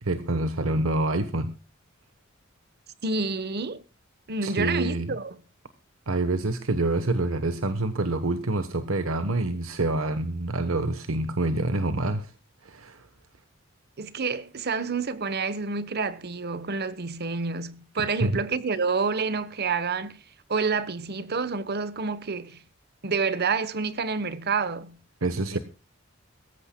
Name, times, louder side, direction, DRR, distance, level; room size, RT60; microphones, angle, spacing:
voice 1, 0.0-1.5 4.4-5.1 6.1-12.3 12.6-13.1 18.0-18.4 25.2-25.6, right 2 dB, 80° right, 1.1 m, -27 dB
voice 2, 3.0-3.8 4.3-5.4 14.0-20.2 20.5-22.6 23.0-25.0 25.5-25.6, right 4 dB, 50° right, 1.0 m, -28 dB
23.0 x 14.5 x 2.2 m
head